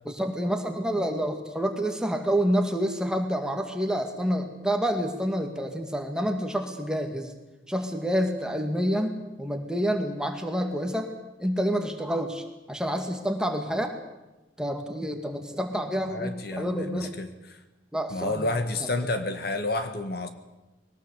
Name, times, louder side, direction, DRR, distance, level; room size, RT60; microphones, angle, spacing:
voice 1, 0.1-7.3 7.7-11.1 11.4-13.9 14.6-17.1 17.9-18.5 18.8-18.9, equal, 5° right, 4 dB, 2.2 m, -28 dB
voice 2, 16.1-17.6 18.1-20.3, left 2 dB, 55° left, 8 dB, 1.9 m, -30 dB
21.5 x 19.0 x 8.4 m, 1.0 s
head